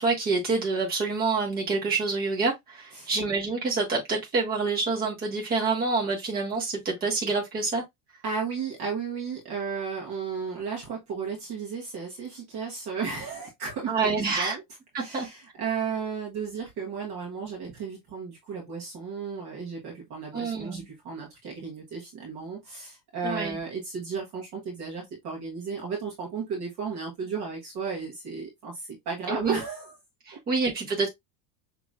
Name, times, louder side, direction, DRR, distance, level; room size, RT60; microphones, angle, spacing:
voice 1, 0.0-7.8 13.9-14.6 14.9-15.3 20.3-20.8 23.2-23.6 29.3-29.6 30.3-31.1, right 4 dB, 20° right, 1.5 m, -27 dB
voice 2, 8.2-14.6 15.0-29.9, right 5 dB, 35° right, 1.3 m, -34 dB
5.7 x 3.0 x 2.4 m
supercardioid pair, 170°, 45 cm